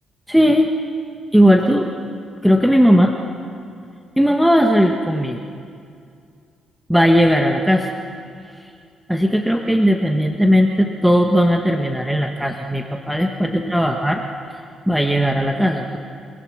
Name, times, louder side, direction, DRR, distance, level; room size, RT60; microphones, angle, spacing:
voice 1, 0.3-0.7 1.3-1.9 2.4-3.1 4.2-5.4 6.9-7.9 8.6-8.7 9.1-14.2 14.9-16.0, equal, ahead, 3 dB, 1.3 m, -17 dB
28.5 x 17.5 x 6.5 m, 2.3 s
cardioid pair, 90°, 0 cm